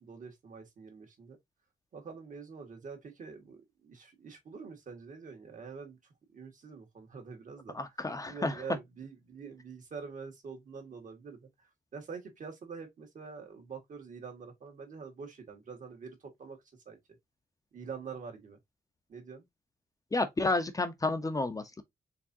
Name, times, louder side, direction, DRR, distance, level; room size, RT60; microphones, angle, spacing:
voice 1, 0.0-1.4 1.9-6.0 6.3-7.8 8.3-11.5 11.9-16.6 16.9-17.0 17.7-18.6 19.1-19.4, right 5 dB, 50° right, 1.9 m, -45 dB
voice 2, 7.7-8.6 20.1-21.8, left 2 dB, 20° left, 0.8 m, -31 dB
4.6 x 3.5 x 2.7 m
cardioid pair, 85°, 17 cm